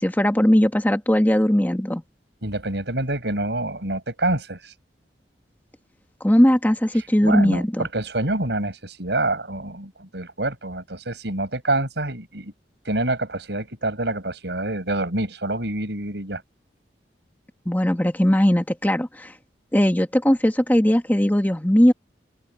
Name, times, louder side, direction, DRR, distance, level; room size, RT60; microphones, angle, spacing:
voice 1, 0.0-2.0 6.2-7.9 17.7-19.3 19.7-21.9, equal, 10° left, 1.3 m, -19 dB
voice 2, 2.4-4.7 7.0-12.5 12.8-16.4, right 2 dB, 70° right, 6.4 m, -27 dB
open air
head